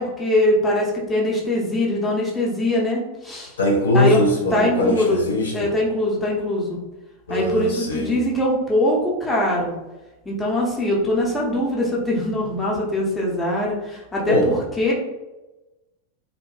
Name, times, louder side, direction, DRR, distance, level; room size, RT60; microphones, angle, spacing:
voice 1, 0.0-3.5 3.9-4.2 4.5-5.2 5.5-6.8 7.3-9.7 10.2-14.9, left 1 dB, 10° left, -4 dB, 0.7 m, -22 dB
voice 2, 3.6-5.7 7.3-8.1 14.3-14.5, left 1 dB, 70° left, -1 dB, 0.5 m, -21 dB
2.6 x 2.1 x 3.1 m, 1.1 s
figure-of-eight pair, 90°, 0 cm